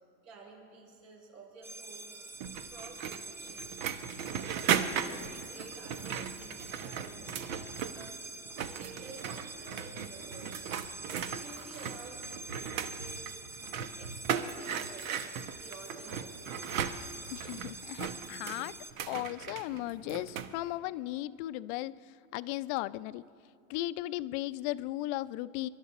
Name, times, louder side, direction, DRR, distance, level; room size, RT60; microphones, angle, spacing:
voice 1, 0.2-3.8 4.4-8.2 8.6-10.5 11.1-13.4 14.0-16.8, right 3 dB, 70° right, -2 dB, 5.2 m, -52 dB
sound 1, 1.6-18.9, right 2 dB, 5° right, 0.4 m, -46 dB
sound 2, 2.4-8.2 8.5-20.5, right 8 dB, 85° right, 1.0 m, -37 dB
voice 2, 17.3-18.7 19.1-23.2 23.7-25.7, left 16 dB, 50° left, 15 dB, 0.5 m, -36 dB
27.0 x 12.0 x 4.1 m, 2.4 s
supercardioid pair, 130°, 40 cm